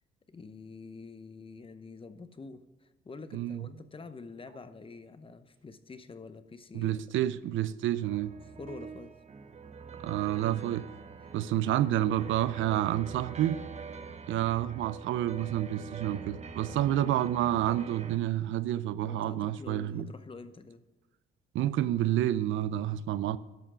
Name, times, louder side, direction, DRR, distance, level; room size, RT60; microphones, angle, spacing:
voice 1, 0.3-7.0 8.6-9.2 11.2-11.8 16.7-17.2 19.0-20.8, left 4 dB, 25° left, 0.8 m, -47 dB
voice 2, 3.3-3.6 6.7-8.3 10.0-10.9 11.3-13.6 14.3-20.0 21.5-23.4, right 12 dB, 80° right, 0.5 m, -29 dB
sound 1, 8.0-18.2, right 5 dB, 35° right, 0.8 m, -44 dB
11.5 x 5.7 x 6.1 m
cardioid pair, 90°, 20 cm